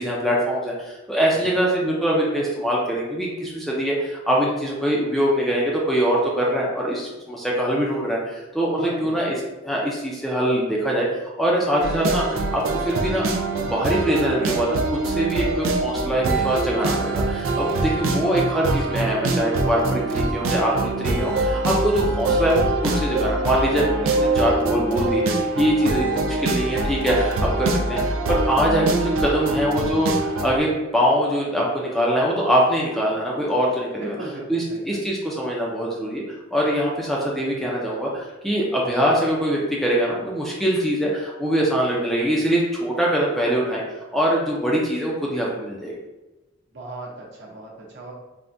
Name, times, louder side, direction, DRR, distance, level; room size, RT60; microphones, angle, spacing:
voice 1, 0.0-9.3 9.6-13.3 13.5-34.1 34.5-36.2 36.5-45.9, equal, ahead, -4 dB, 0.4 m, -23 dB
voice 2, 1.4-1.7 8.8-9.5 17.7-18.5 27.9-28.1 34.0-35.0 46.7-48.1, right 2 dB, 60° right, -3 dB, 0.7 m, -38 dB
sound 1, 11.8-30.6, right 2 dB, 85° right, 0.4 m, -24 dB
3.5 x 2.1 x 2.5 m, 1.1 s
head